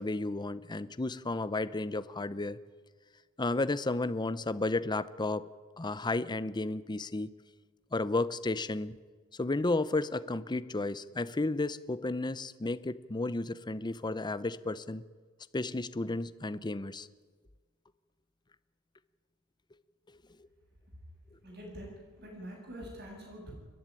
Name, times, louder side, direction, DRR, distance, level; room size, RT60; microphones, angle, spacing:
voice 1, 0.0-2.6 3.4-5.5 5.8-7.3 7.9-9.0 9.3-15.0 15.5-17.1, left 2 dB, 20° left, 14 dB, 0.6 m, -32 dB
voice 2, 21.4-23.5, equal, 50° right, 0 dB, 7.8 m, -45 dB
29.0 x 10.5 x 9.9 m, 1.5 s
head